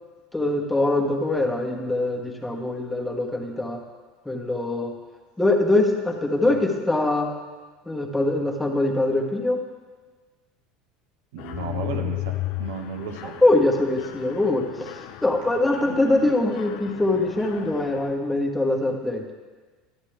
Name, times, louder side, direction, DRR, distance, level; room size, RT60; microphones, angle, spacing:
voice 1, 0.3-3.8 4.2-4.9 5.4-7.3 7.9-9.6 13.4-19.2, left 2 dB, 10° left, 0 dB, 1.4 m, -23 dB
voice 2, 11.3-12.3 12.6-13.3 14.3-14.4 15.8-16.3, right 6 dB, 75° right, 4 dB, 0.9 m, -34 dB
Mechanisms, 11.4-18.1, left 15 dB, 65° left, 0.6 m, -35 dB
11.5 x 7.3 x 3.3 m, 1.4 s
hypercardioid pair, 90°, 0 cm